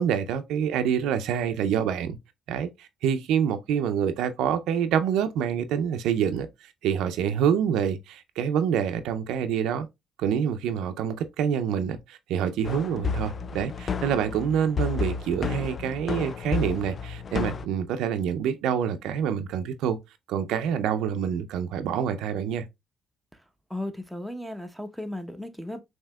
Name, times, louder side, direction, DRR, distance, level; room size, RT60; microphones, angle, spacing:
voice 1, 0.0-2.2 2.5-6.5 6.8-9.9 10.2-20.0 20.3-22.7, right 8 dB, 90° right, 0.4 m, -26 dB
sound 1, 12.6-17.7, left 5 dB, 45° left, 0.3 m, -31 dB
voice 2, 23.7-25.8, left 1 dB, ahead, 0.7 m, -35 dB
5.5 x 2.8 x 2.2 m
cardioid pair, 90°, 0 cm